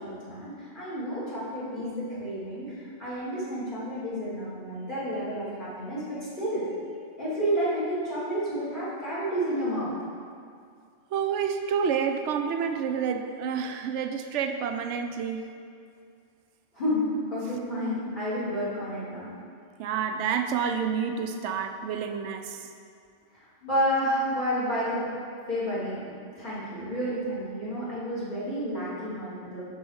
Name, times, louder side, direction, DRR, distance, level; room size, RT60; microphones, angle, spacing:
voice 1, 0.0-6.7 7.2-9.9 16.7-17.0 17.3-19.3 23.3-25.2 25.5-26.0 26.4-29.7, equal, 45° left, -10 dB, 1.7 m, -30 dB
voice 2, 11.1-15.4 19.8-22.7, right 7 dB, 80° right, 6 dB, 0.9 m, -29 dB
5.6 x 4.6 x 6.1 m, 2.3 s
omnidirectional pair, 1.2 m